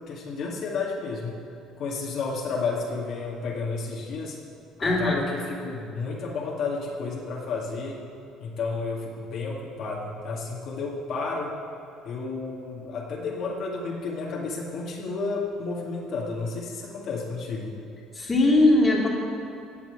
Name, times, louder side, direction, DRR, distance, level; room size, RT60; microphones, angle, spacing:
voice 1, 0.1-1.3 1.8-4.4 4.8-8.0 8.4-11.5 12.0-17.8, left 4 dB, 55° left, -2 dB, 2.1 m, -31 dB
voice 2, 4.8-5.2 18.1-19.1, left 2 dB, 20° left, -2 dB, 2.5 m, -20 dB
16.5 x 6.1 x 9.5 m, 2.7 s
cardioid pair, 145°, 0 cm